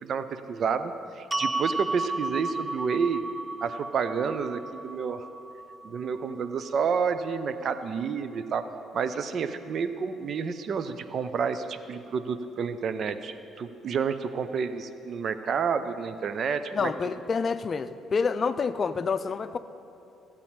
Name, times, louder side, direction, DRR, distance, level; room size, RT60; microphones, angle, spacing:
voice 1, 0.0-3.2 3.6-5.3 5.8-8.7 8.9-16.9, right 6 dB, 55° right, 10 dB, 0.6 m, -30 dB
sound 1, 1.3-7.5, right 2 dB, 25° right, 0.3 m, -34 dB
voice 2, 16.7-19.6, left 5 dB, 45° left, 12 dB, 0.5 m, -28 dB
14.5 x 8.5 x 4.4 m, 2.9 s
hypercardioid pair, 55°, 0 cm